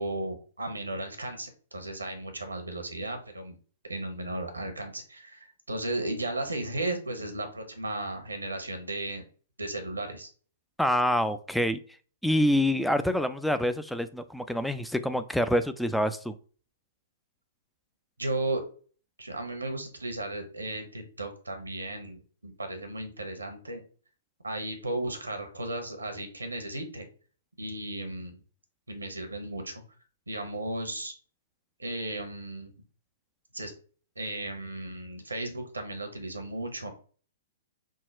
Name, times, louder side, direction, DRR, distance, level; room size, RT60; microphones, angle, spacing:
voice 1, 0.0-3.5 3.9-9.2 9.6-10.3 18.2-18.6 19.2-23.8 24.4-27.1 27.6-28.4 28.9-29.8 30.3-31.1 31.8-32.7 33.5-33.7 34.2-36.9, right 2 dB, 80° right, 6 dB, 0.9 m, -35 dB
voice 2, 10.8-11.8 12.2-16.3, equal, ahead, 10 dB, 0.3 m, -26 dB
3.7 x 2.2 x 4.3 m, 0.41 s
figure-of-eight pair, 115°, 0 cm